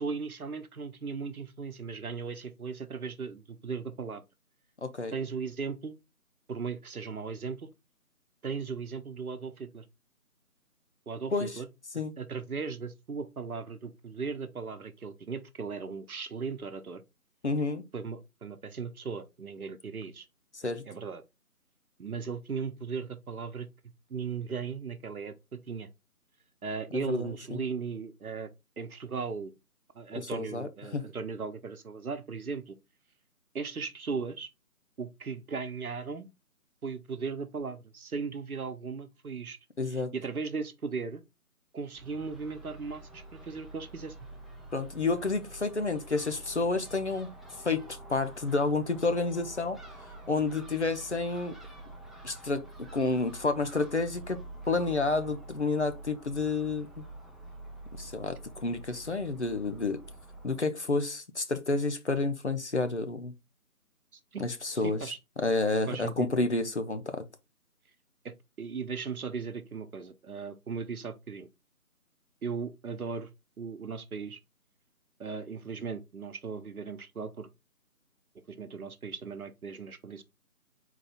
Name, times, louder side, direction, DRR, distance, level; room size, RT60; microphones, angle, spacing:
voice 1, 0.0-4.2 5.1-6.0 6.5-7.7 8.4-9.9 11.1-11.7 12.2-17.0 17.9-20.3 20.9-21.2 22.0-23.7 24.1-25.9 26.6-29.6 29.9-32.8 33.5-34.5 35.0-36.3 36.8-39.6 39.8-41.2 41.7-44.2 58.0-58.1 64.1-64.4 64.8-65.2 65.9-66.3 68.2-71.5 72.4-73.3 73.6-74.4 75.2-77.5 78.5-80.2, right 5 dB, 70° right, 0.8 m, -37 dB
voice 2, 4.8-5.1 11.3-11.5 11.9-12.1 17.4-17.8 20.5-20.8 26.9-27.6 30.3-31.0 39.8-40.1 44.7-47.3 47.6-49.8 50.3-51.5 52.2-52.6 52.9-54.4 54.6-57.0 58.0-60.0 60.4-63.3 64.4-65.0 65.4-67.2, left 3 dB, 50° left, 0.6 m, -30 dB
Crow / Gull seagull, 41.9-60.6, right 2 dB, ahead, 0.4 m, -47 dB
4.0 x 2.4 x 4.1 m
figure-of-eight pair, 160°, 45 cm